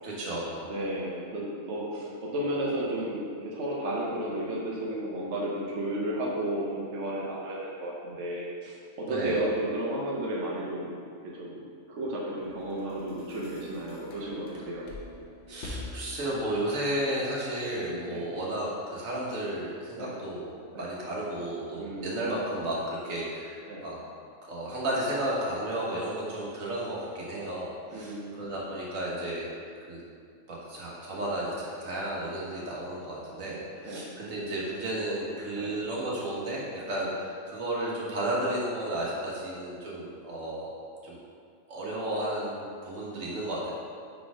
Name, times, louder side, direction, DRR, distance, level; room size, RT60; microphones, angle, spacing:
voice 1, 0.0-0.7 9.1-9.4 15.5-24.0 24.5-29.5 29.9-30.0 30.5-40.7 41.0-41.2 41.7-43.7, right 1 dB, 85° right, -5 dB, 1.6 m, -33 dB
voice 2, 0.7-8.8 9.1-11.6 11.9-14.8 18.1-18.2 20.0-20.1 20.7-20.9 21.7-22.1 23.7-23.8 27.9-28.4 33.8-34.0 35.6-35.7 37.0-37.1, right 1 dB, 65° right, -5 dB, 1.1 m, -33 dB
sound 1, 12.4-16.8, left 2 dB, 65° left, 1.2 m, -44 dB
4.6 x 4.2 x 4.8 m, 2.3 s
omnidirectional pair, 1.4 m